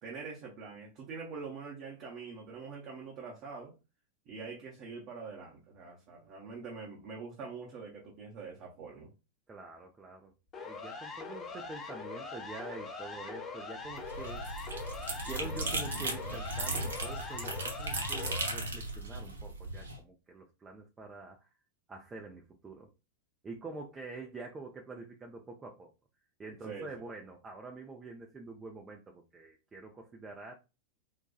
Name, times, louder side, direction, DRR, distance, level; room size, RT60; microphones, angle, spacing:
voice 1, 0.0-3.7 4.3-9.1 26.6-26.9, right 4 dB, 40° right, 0.8 m, -44 dB
voice 2, 9.5-10.3 10.6-14.5 15.2-21.5 21.9-22.9 23.4-25.9 26.4-30.5, right 3 dB, 15° right, 0.5 m, -46 dB
Siren, 10.5-18.5, left 4 dB, 25° left, 0.8 m, -42 dB
sound 1, 13.8-20.0, right 2 dB, 70° right, 0.8 m, -37 dB
4.0 x 2.2 x 2.3 m
figure-of-eight pair, 90°, 0 cm